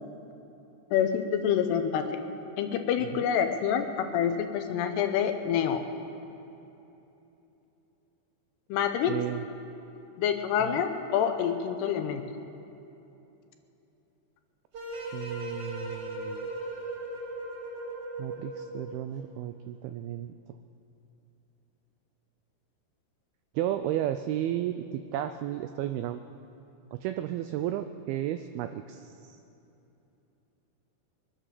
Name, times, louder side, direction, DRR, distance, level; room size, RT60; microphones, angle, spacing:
voice 1, 0.9-2.2 2.6-5.8 8.7-9.1 10.2-12.3, left 8 dB, 80° left, 7 dB, 2.9 m, -27 dB
voice 2, 9.1-9.4 10.6-10.8 15.1-16.5 18.2-20.3 23.6-26.2 26.9-29.4, right 12 dB, 90° right, 9 dB, 2.1 m, -33 dB
sound 1, 14.7-19.1, right 1 dB, 45° right, 4.9 m, -37 dB
23.0 x 9.2 x 6.7 m, 2.9 s
omnidirectional pair, 4.9 m